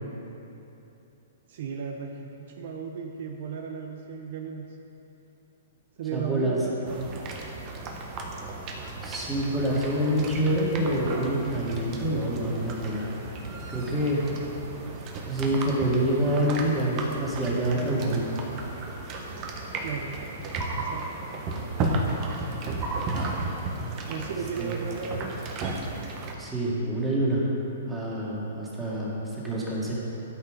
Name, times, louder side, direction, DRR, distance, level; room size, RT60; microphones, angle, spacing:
voice 1, 1.5-4.8 6.0-7.3 19.8-20.2 20.7-21.3 24.1-25.3, right 6 dB, 60° right, 3 dB, 0.7 m, -35 dB
voice 2, 6.1-6.6 9.0-13.1 13.7-14.3 15.3-18.2 24.6-24.7 26.4-27.5 27.9-29.9, right 1 dB, 10° right, -6 dB, 2.1 m, -26 dB
sound 1, 6.8-26.3, right 2 dB, 30° right, 1.1 m, -34 dB
12.5 x 5.7 x 5.1 m, 2.9 s
hypercardioid pair, 140°, 0 cm